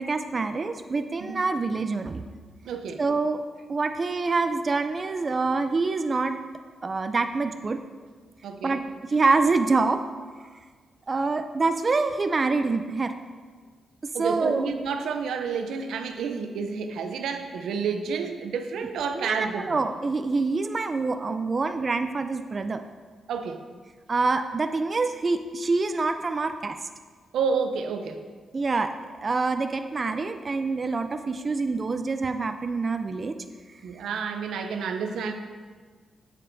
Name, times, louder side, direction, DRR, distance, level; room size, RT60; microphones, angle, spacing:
voice 1, 0.0-2.2 3.0-3.4 3.7-6.4 6.8-7.8 8.6-8.8 9.1-10.0 11.1-13.1 14.2-14.7 19.1-22.8 24.1-26.8 28.5-33.4, right 3 dB, 35° right, 8 dB, 0.3 m, -26 dB
voice 2, 2.6-3.0 8.4-8.9 14.1-19.8 23.3-23.6 27.3-28.2 33.8-35.3, right 5 dB, 85° right, 6 dB, 0.5 m, -30 dB
7.5 x 7.5 x 2.6 m, 1.5 s
cardioid pair, 90°, 0 cm